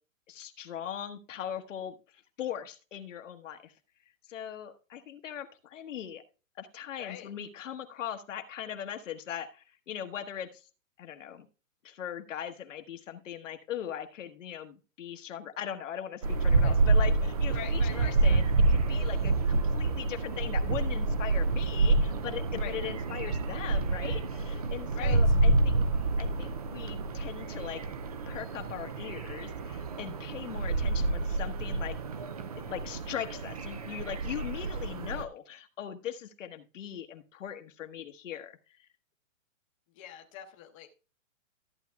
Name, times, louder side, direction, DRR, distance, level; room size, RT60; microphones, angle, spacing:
voice 1, 0.3-3.7 4.3-6.2 6.6-10.6 11.0-11.5 11.8-25.8 26.2-27.8 28.3-32.0 32.6-38.9, left 9 dB, 65° left, 6 dB, 1.2 m, -40 dB
voice 2, 7.0-7.3 16.6-16.7 17.5-18.1 22.5-22.8 24.9-25.4 39.9-40.9, left 10 dB, 25° left, 1 dB, 0.9 m, -42 dB
sound 1, 16.2-35.2, right 3 dB, 30° right, 0.4 m, -28 dB
14.0 x 8.2 x 2.3 m, 0.34 s
hypercardioid pair, 160°, 40 cm